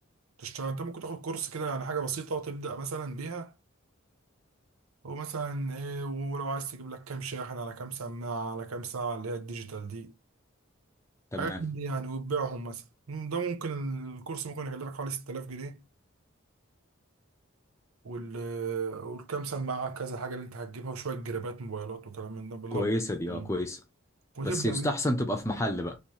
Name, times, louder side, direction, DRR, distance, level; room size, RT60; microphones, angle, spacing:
voice 1, 0.4-3.5 5.0-10.1 11.3-15.9 18.0-22.9 23.3-23.5 24.3-25.0, right 4 dB, 90° right, 0.8 m, -35 dB
voice 2, 11.3-11.6 22.7-23.8 24.4-26.0, left 1 dB, 15° left, 0.7 m, -30 dB
3.2 x 2.9 x 4.7 m
head